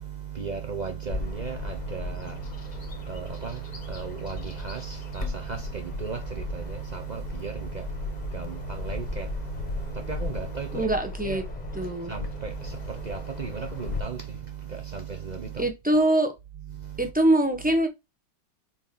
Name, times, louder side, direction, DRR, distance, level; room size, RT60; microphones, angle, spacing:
voice 1, 0.0-11.0 11.2-15.7 16.5-17.1, right 6 dB, 60° right, 0.4 m, -35 dB
Bird vocalization bird call bird song, 1.1-14.0, left 4 dB, 30° left, 1.1 m, -36 dB
voice 2, 10.7-11.4 11.8-12.1 15.6-16.3 17.0-17.9, right 1 dB, 5° right, 0.8 m, -23 dB
4.5 x 4.4 x 5.3 m
omnidirectional pair, 1.9 m